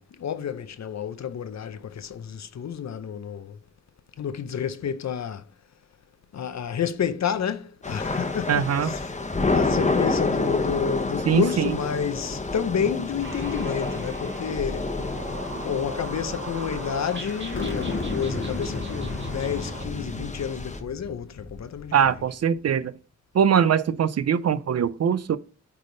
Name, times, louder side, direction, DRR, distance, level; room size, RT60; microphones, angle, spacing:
voice 1, 0.0-3.6 4.2-5.4 6.3-9.0 9.5-14.9 15.6-21.9, left 8 dB, 65° left, 0.7 m, -30 dB
Thunder / Rain, 7.8-20.8, left 3 dB, 25° left, 1.0 m, -29 dB
voice 2, 8.5-8.9 11.3-11.8 21.9-22.9 23.3-25.4, right 8 dB, 60° right, 0.5 m, -22 dB
sound 1, 13.2-20.3, right 3 dB, 40° right, 1.6 m, -39 dB
sound 2, 17.5-22.2, left 3 dB, 45° left, 1.4 m, -34 dB
9.5 x 3.4 x 3.9 m
wide cardioid pair, 110°, 29 cm